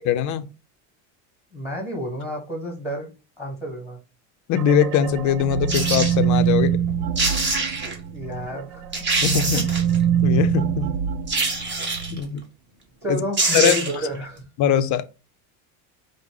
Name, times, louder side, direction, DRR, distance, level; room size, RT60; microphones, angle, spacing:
voice 1, 0.0-0.5 4.5-6.8 9.2-9.6 10.2-11.0 12.1-12.4 13.1-13.2 13.5-13.8 14.6-15.1, left 9 dB, 40° left, 0.5 m, -21 dB
voice 2, 1.5-3.1 3.4-4.0 8.1-8.8 11.5-11.8 12.2-12.3 13.0-14.4, equal, 5° right, 1.5 m, -30 dB
sound 1, 4.6-8.5 8.8-12.2, right 8 dB, 90° right, 0.5 m, -24 dB
sound 2, 5.7-6.2 6.9-7.0 7.2-8.0 8.5-8.6 8.9-10.0 11.3-12.2 13.0-13.1 13.3-14.1 14.4-14.5, right 3 dB, 25° right, 1.3 m, -24 dB
5.0 x 2.1 x 4.7 m
supercardioid pair, 115°, 46 cm